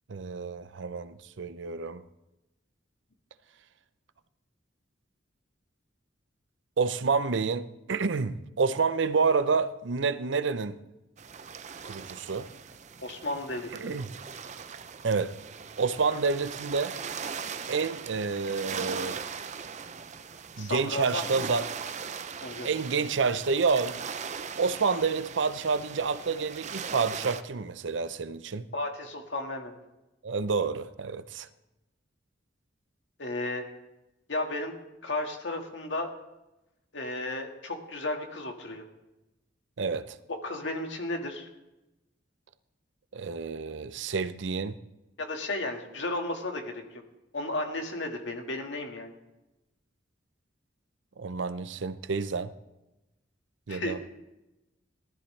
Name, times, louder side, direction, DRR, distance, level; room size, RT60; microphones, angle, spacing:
voice 1, 0.1-2.0 6.8-10.8 11.8-12.5 13.7-14.1 15.0-15.3 15.8-16.9 17.7-19.2 20.6-21.6 22.6-24.0 24.4-28.7 30.2-31.5 39.8-40.2 43.1-44.8 51.2-52.5 53.7-54.0, right 4 dB, 85° right, 0.6 m, -29 dB
sound 1, 11.2-27.4, right 6 dB, 40° right, 0.6 m, -39 dB
voice 2, 13.0-14.0 20.6-21.2 22.4-22.7 28.7-29.7 33.2-33.6 34.3-34.7 35.0-36.1 36.9-38.8 40.4-41.5 45.2-46.8 47.3-49.1 53.7-54.1, left 2 dB, 80° left, 1.8 m, -33 dB
18.0 x 13.0 x 3.3 m
head